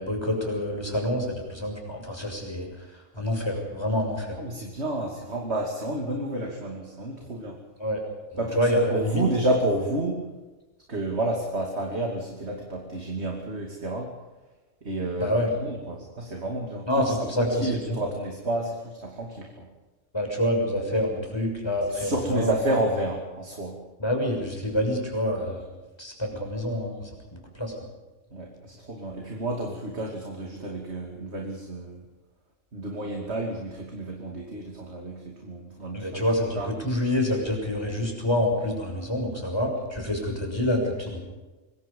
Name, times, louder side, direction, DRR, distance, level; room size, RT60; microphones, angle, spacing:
voice 1, 0.0-2.9 3.1-4.4 7.8-8.1 8.3-9.2 15.2-15.5 16.9-18.0 20.1-22.6 24.0-25.6 26.0-27.7 35.9-41.2, left 1 dB, 20° left, 1 dB, 6.4 m, -27 dB
voice 2, 4.4-7.6 8.4-8.6 8.9-10.3 10.9-14.1 14.8-19.7 21.9-23.8 28.3-32.0 32.7-36.3 36.6-36.7, right 1 dB, 55° right, 1 dB, 3.0 m, -30 dB
25.5 x 23.0 x 5.5 m, 1.2 s
omnidirectional pair, 1.3 m